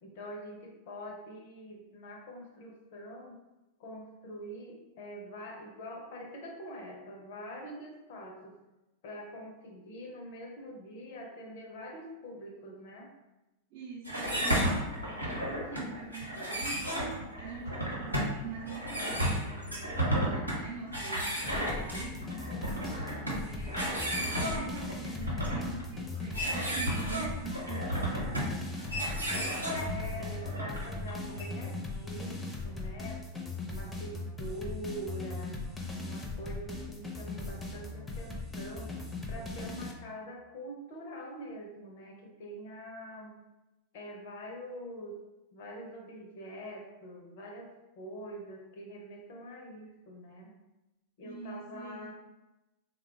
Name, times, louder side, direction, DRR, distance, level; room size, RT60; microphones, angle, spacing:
voice 1, 0.0-3.4 3.8-8.6 9.0-13.1 29.7-33.2 33.7-35.6 36.0-38.9 39.3-43.3 43.9-45.2 45.5-50.5 51.2-52.1, equal, 50° left, 0 dB, 0.6 m, -44 dB
voice 2, 13.7-16.8 17.4-22.5 22.8-28.7 51.2-52.1, right 5 dB, 45° right, -5 dB, 0.6 m, -45 dB
sound 1, 14.0-31.4, equal, 90° right, 0.9 m, -33 dB
sound 2, 21.5-39.9, left 2 dB, 10° left, 0.6 m, -39 dB
3.5 x 2.2 x 3.3 m, 1.0 s
figure-of-eight pair, 90°, 0 cm